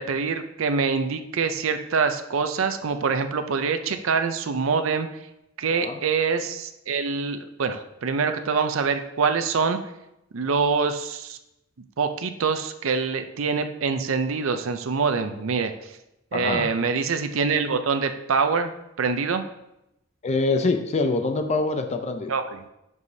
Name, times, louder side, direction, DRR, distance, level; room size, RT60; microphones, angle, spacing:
voice 1, 0.0-5.1 5.6-9.8 10.3-11.4 12.0-15.7 16.3-18.7 19.0-19.4 22.3-22.6, right 5 dB, 75° right, 8 dB, 0.5 m, -25 dB
voice 2, 16.3-16.7 20.2-22.3, left 3 dB, 35° left, 6 dB, 0.5 m, -25 dB
10.5 x 4.8 x 2.7 m, 0.87 s
head